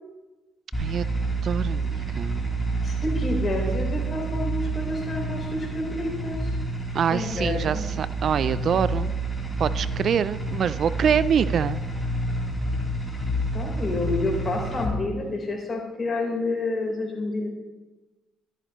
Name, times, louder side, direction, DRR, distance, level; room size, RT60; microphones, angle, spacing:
sound 1, 0.7-14.8, right 2 dB, 10° left, 3.3 m, -28 dB
voice 1, 1.4-2.4 6.9-9.1 9.6-11.8, right 7 dB, 60° right, 16 dB, 0.3 m, -25 dB
voice 2, 2.8-6.6 7.1-7.8 13.5-17.5, left 2 dB, 35° left, 0 dB, 3.8 m, -29 dB
12.5 x 11.0 x 3.0 m, 1.2 s
supercardioid pair, 65°, 0 cm